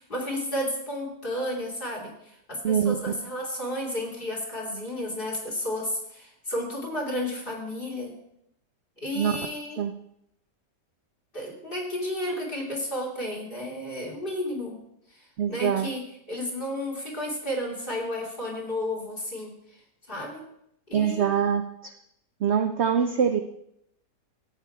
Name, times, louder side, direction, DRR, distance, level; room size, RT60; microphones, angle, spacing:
voice 1, 0.0-8.2 9.0-9.8 11.3-14.8 15.1-19.5 20.1-20.5 20.9-21.3, left 1 dB, 30° left, -2 dB, 2.8 m, -32 dB
voice 2, 2.6-2.9 9.2-9.3 9.8-9.9 15.4-15.9 20.9-21.9 22.4-23.4, right 8 dB, 65° right, 7 dB, 0.6 m, -24 dB
13.5 x 9.1 x 4.5 m, 0.77 s
omnidirectional pair, 1.8 m